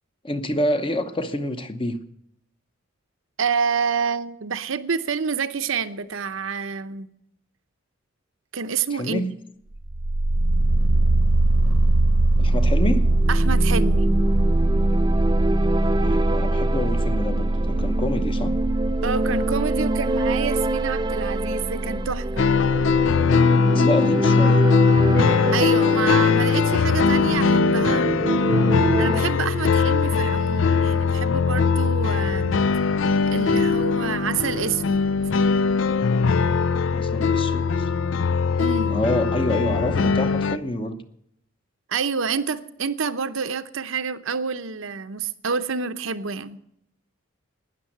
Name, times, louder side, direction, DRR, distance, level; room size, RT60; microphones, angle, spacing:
voice 1, 0.2-2.0 8.9-9.3 12.4-13.1 15.9-18.5 23.7-24.7 36.9-37.9 38.9-41.0, left 1 dB, 25° left, 0.8 m, -27 dB
voice 2, 3.4-7.1 8.5-9.3 13.3-14.1 19.0-22.5 25.5-28.1 29.0-32.6 33.3-35.0 38.6-39.0 41.9-46.6, right 5 dB, 70° right, 0.8 m, -28 dB
sound 1, 9.7-23.2, right 1 dB, 90° right, 1.1 m, -22 dB
sound 2, 12.4-29.2, right 2 dB, 20° right, 0.5 m, -27 dB
sound 3, 22.4-40.6, left 5 dB, 60° left, 0.5 m, -20 dB
12.0 x 10.0 x 8.6 m
head